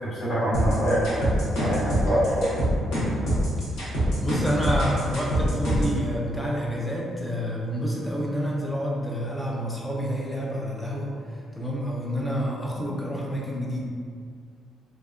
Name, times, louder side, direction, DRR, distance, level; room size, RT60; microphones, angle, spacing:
voice 1, 0.0-2.6, equal, 60° left, -16 dB, 1.2 m, -25 dB
sound 1, 0.5-6.0, equal, 80° left, 1.0 m, -24 dB
voice 2, 4.2-11.1 11.5-13.8, equal, 10° left, -4 dB, 0.4 m, -28 dB
2.7 x 2.3 x 2.3 m, 2.1 s
cardioid pair, 150°, 0 cm